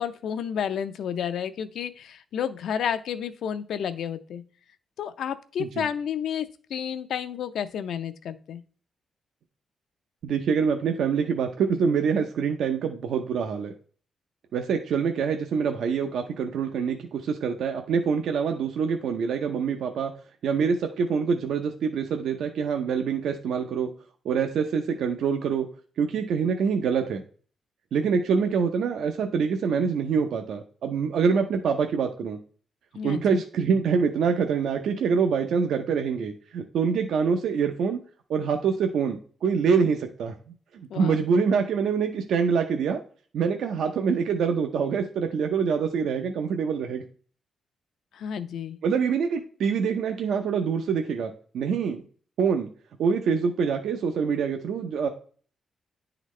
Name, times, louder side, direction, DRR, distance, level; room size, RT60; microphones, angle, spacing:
voice 1, 0.0-4.4 5.0-8.6 32.9-33.4 40.9-41.2 48.1-48.8, left 8 dB, 70° left, 11 dB, 0.5 m, -31 dB
voice 2, 10.2-13.7 14.5-20.1 20.4-23.9 24.2-25.7 26.0-27.2 27.9-32.4 33.0-38.0 38.3-40.3 40.7-43.0 43.3-47.0 48.8-52.0 52.4-52.7 53.0-55.1, right 6 dB, 70° right, 5 dB, 0.5 m, -25 dB
10.0 x 3.9 x 3.1 m, 0.43 s
wide cardioid pair, 160°, 0 cm